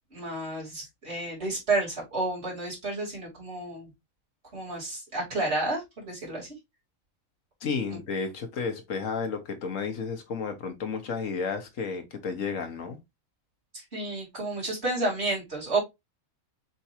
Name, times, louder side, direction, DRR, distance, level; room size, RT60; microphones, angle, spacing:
voice 1, 0.1-3.9 4.5-6.5 7.9-8.0 13.9-15.8, right 2 dB, 50° right, 3.2 m, -31 dB
voice 2, 7.6-13.0, left 5 dB, 70° left, 1.5 m, -32 dB
5.3 x 3.5 x 2.9 m
omnidirectional pair, 1.4 m